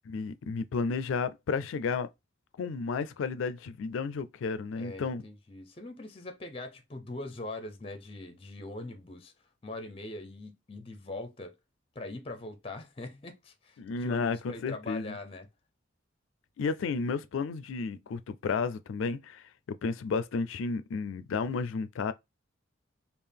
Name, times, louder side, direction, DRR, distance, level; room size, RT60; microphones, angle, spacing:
voice 1, 0.1-2.1 2.6-5.2 13.8-15.1 16.6-19.4 19.8-22.1, left 4 dB, 85° left, 0.3 m, -32 dB
voice 2, 4.7-9.3 9.6-11.5 11.9-15.5, left 2 dB, 30° left, 0.5 m, -42 dB
3.6 x 2.4 x 3.3 m
head